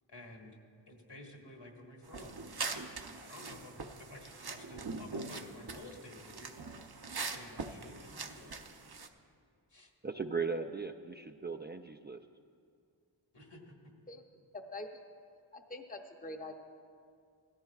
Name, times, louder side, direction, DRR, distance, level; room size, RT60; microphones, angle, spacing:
voice 1, 0.1-0.6 0.9-2.6 3.1-6.6 7.2-8.6 9.7-9.9 13.3-13.7, left 2 dB, 65° left, 0 dB, 1.8 m, -52 dB
sound 1, 2.0-9.1, right 4 dB, 55° right, 0.8 m, -43 dB
voice 2, 10.0-12.2, right 4 dB, 25° right, 6 dB, 0.3 m, -37 dB
voice 3, 14.7-15.0 15.5-16.5, left 2 dB, 20° left, 4 dB, 0.7 m, -44 dB
16.5 x 13.5 x 2.4 m, 2.2 s
wide cardioid pair, 40°, 45 cm